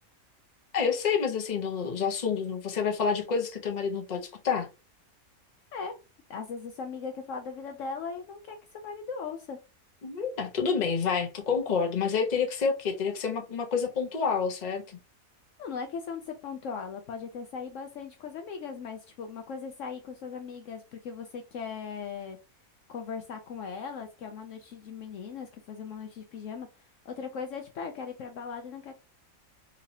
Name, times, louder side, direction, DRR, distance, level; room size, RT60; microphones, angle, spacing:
voice 1, 0.7-4.7 10.0-15.0, left 6 dB, 35° left, 0.9 m, -28 dB
voice 2, 6.3-9.6 15.6-22.4 22.9-28.9, left 5 dB, 70° left, 0.9 m, -38 dB
4.0 x 2.9 x 2.7 m
omnidirectional pair, 1.5 m